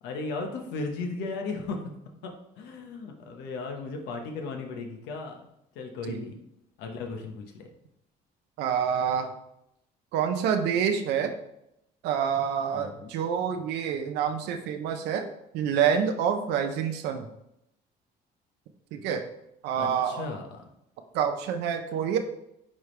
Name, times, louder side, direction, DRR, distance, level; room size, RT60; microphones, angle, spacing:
voice 1, 0.0-1.8 2.2-5.5 5.7-6.4 6.8-7.7 12.7-13.1 19.8-20.7, left 3 dB, 90° left, 3 dB, 1.1 m, -36 dB
voice 2, 8.6-9.3 10.1-11.3 12.0-15.3 15.5-17.3 18.9-19.2 19.6-20.3 21.1-22.2, right 8 dB, 90° right, 6 dB, 0.7 m, -27 dB
9.5 x 3.4 x 3.3 m, 0.81 s
cardioid pair, 110°, 17 cm